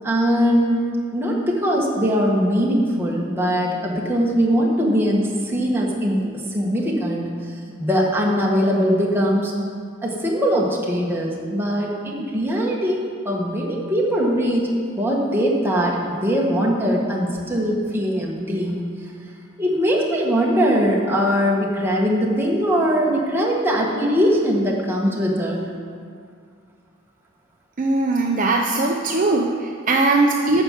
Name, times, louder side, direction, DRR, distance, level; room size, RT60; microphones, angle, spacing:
voice 1, 0.0-7.3 7.8-9.5 10.0-18.8 19.6-25.6, equal, 10° right, -3 dB, 1.5 m, -21 dB
voice 2, 27.8-30.6, right 2 dB, 40° right, 0 dB, 0.6 m, -20 dB
9.2 x 6.2 x 7.4 m, 2.1 s
head